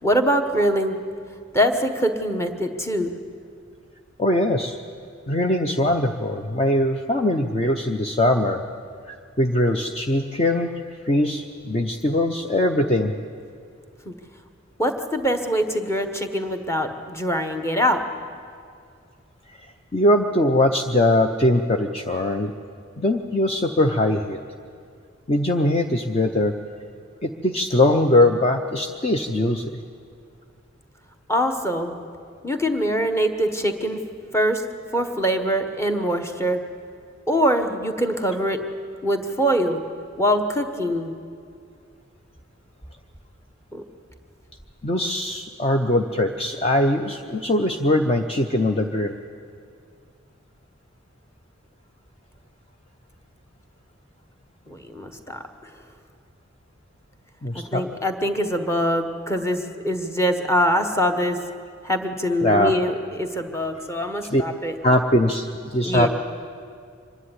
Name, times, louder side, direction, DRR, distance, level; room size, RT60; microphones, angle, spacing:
voice 1, 0.0-1.0 1.5-3.1 14.0-14.1 14.8-18.0 31.3-31.9 32.4-34.0 34.3-34.6 34.9-36.6 37.3-38.6 39.0-39.8 40.2-41.1 43.7-43.8 54.7-55.4 57.5-61.4 61.8-64.7 65.8-66.1, equal, 15° left, 5 dB, 1.2 m, -23 dB
voice 2, 4.2-4.8 5.3-8.6 9.1-10.7 11.0-13.1 19.5-19.6 19.9-22.5 23.0-24.4 25.3-26.5 27.2-29.8 44.8-49.1 57.4-57.9 62.4-62.8 64.3-64.4 64.8-66.1, left 1 dB, 30° left, 4 dB, 0.7 m, -21 dB
25.0 x 10.5 x 9.8 m, 2.3 s
head